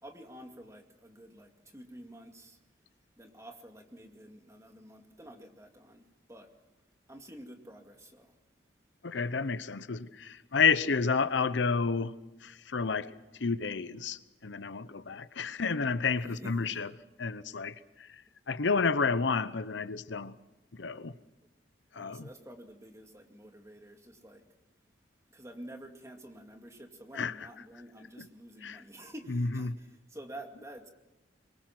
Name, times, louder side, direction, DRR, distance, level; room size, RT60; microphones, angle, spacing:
voice 1, 0.0-2.6 3.2-6.5 7.1-8.3 16.2-16.7 21.9-24.4 25.3-30.9, right 1 dB, 15° right, 2.2 m, -49 dB
voice 2, 9.0-16.9 17.2-20.3 20.7-21.1 21.9-22.3 27.1-27.5 28.2-28.3 28.6-28.8 29.3-29.8, left 5 dB, 85° left, 0.9 m, -31 dB
25.0 x 23.0 x 6.1 m
head